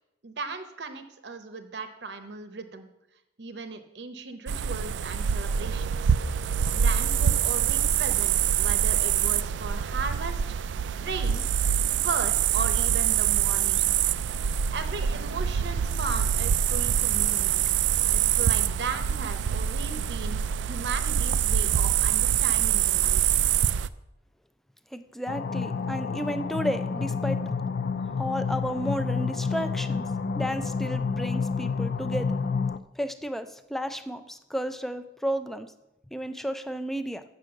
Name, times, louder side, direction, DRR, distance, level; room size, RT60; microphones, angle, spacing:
voice 1, 0.2-2.9 3.4-6.1 6.7-10.6 11.0-11.5 11.9-13.9 14.7-17.6 18.1-23.3, right 4 dB, 70° right, 9 dB, 0.8 m, -37 dB
sound 1, 4.5-23.9, right 9 dB, 90° right, 0.3 m, -25 dB
voice 2, 24.9-27.4 28.2-30.0 30.4-32.4 33.0-35.7 36.1-37.2, equal, ahead, 10 dB, 0.4 m, -32 dB
sound 2, 25.3-32.8, left 5 dB, 60° left, 0.4 m, -29 dB
7.9 x 6.2 x 7.6 m, 0.92 s
head